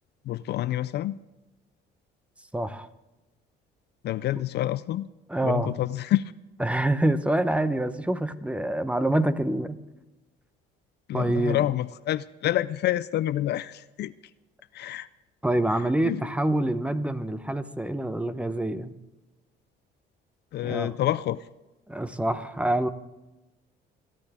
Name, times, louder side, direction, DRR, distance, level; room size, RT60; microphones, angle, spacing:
voice 1, 0.3-1.2 4.0-5.1 5.4-6.3 11.1-14.1 14.7-15.1 16.1-16.3 20.5-21.4, left 13 dB, 60° left, 16 dB, 0.5 m, -28 dB
voice 2, 2.5-2.9 5.3-5.7 6.6-9.8 11.1-11.6 15.4-19.0 20.6-20.9 21.9-22.9, right 1 dB, 5° right, 12 dB, 0.9 m, -26 dB
27.5 x 10.5 x 3.6 m, 1.0 s
cardioid pair, 105°, 19 cm